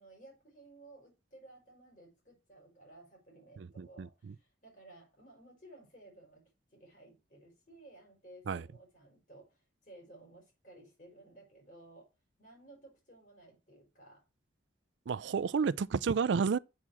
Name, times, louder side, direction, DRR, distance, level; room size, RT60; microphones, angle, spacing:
voice 1, 0.0-6.4 6.7-12.1 12.4-14.2 15.4-15.7 16.2-16.3, right 2 dB, 45° left, 5.1 m, -56 dB
voice 2, 3.6-4.3 8.5-8.6 15.1-16.6, right 5 dB, 80° right, 0.4 m, -31 dB
7.4 x 6.5 x 7.0 m
head